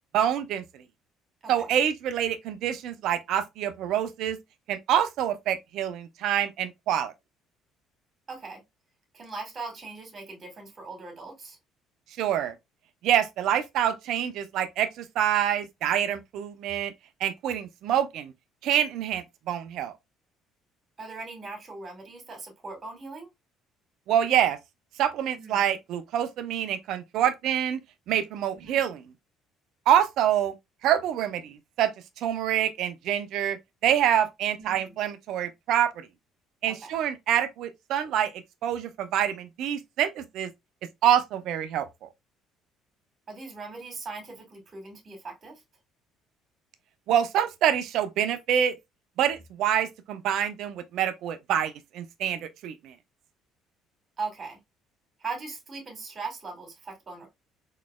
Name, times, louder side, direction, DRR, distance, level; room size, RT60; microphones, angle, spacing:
voice 1, 0.1-0.6 1.5-4.4 4.7-7.1 12.2-12.5 13.0-16.9 17.2-18.3 18.6-19.9 24.1-24.6 25.0-27.8 28.1-29.0 29.9-30.5 30.8-31.9 32.2-33.6 33.8-36.1 36.6-38.3 38.6-40.5 41.0-42.1 47.1-48.7 49.2-52.9, right 10 dB, 65° right, 0.6 m, -26 dB
voice 2, 8.3-8.6 9.1-11.6 21.0-23.3 25.3-25.7 28.5-28.8 34.6-35.0 36.6-36.9 43.3-45.6 54.2-54.6 55.2-57.3, right 4 dB, 40° right, 2.1 m, -39 dB
3.9 x 3.1 x 2.3 m
hypercardioid pair, 60°, 0 cm